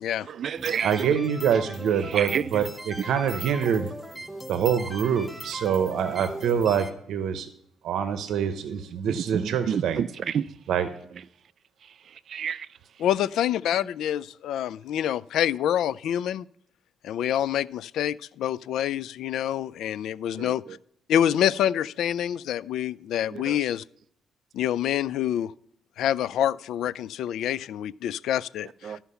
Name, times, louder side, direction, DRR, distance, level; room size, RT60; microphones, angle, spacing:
voice 1, 0.2-1.2 2.0-2.6 9.1-10.5 11.8-12.7 20.4-20.8 23.3-23.6 28.8-29.0, right 8 dB, 50° right, 0.3 m, -30 dB
sound 1, 0.6-6.9, right 1 dB, ahead, 0.7 m, -39 dB
voice 2, 0.8-3.9 4.5-7.5 7.8-10.0 10.7-10.9, right 8 dB, 75° right, 0.8 m, -25 dB
voice 3, 13.0-16.5 17.0-20.6 21.1-23.8 24.5-25.5 26.0-29.0, left 10 dB, 80° left, 0.3 m, -26 dB
13.0 x 5.7 x 5.6 m
cardioid pair, 150°, 0 cm